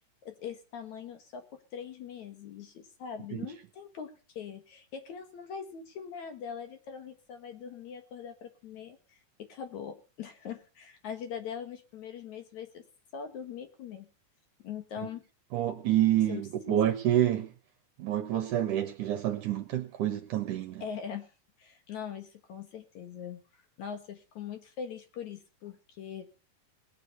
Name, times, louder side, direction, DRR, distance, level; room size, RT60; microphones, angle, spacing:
voice 1, 0.2-4.1 4.4-12.8 13.1-14.1 14.6-15.2 16.3-16.4 16.7-16.9 20.8-21.3 21.6-26.3, left 7 dB, 60° left, 2.8 m, -42 dB
voice 2, 15.5-17.5 18.0-20.8, right 12 dB, 70° right, 2.5 m, -28 dB
19.5 x 9.1 x 5.4 m
omnidirectional pair, 4.0 m